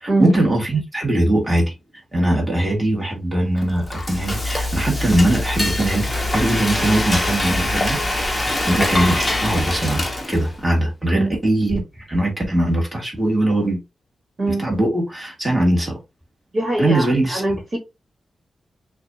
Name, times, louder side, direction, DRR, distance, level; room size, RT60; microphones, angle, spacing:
voice 1, 0.0-1.7 2.1-8.3 8.7-10.0 10.3-13.8 14.5-16.0 16.8-17.4, right 1 dB, 5° right, 1.8 m, -21 dB
Frying (food), 3.6-10.6, left 1 dB, 15° left, 0.9 m, -23 dB
voice 2, 16.5-17.8, right 2 dB, 40° right, 1.6 m, -21 dB
6.4 x 2.4 x 2.7 m
wide cardioid pair, 135°, 0 cm